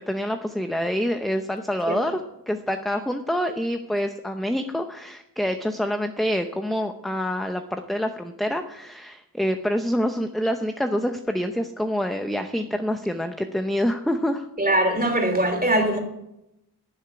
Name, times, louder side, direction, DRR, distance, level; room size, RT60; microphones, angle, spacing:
voice 1, 0.1-2.2 2.5-14.5, equal, ahead, 0.7 m, -26 dB
voice 2, 14.6-16.0, right 1 dB, 20° right, 3.0 m, -21 dB
12.0 x 7.2 x 9.4 m
wide cardioid pair, 75°, 41 cm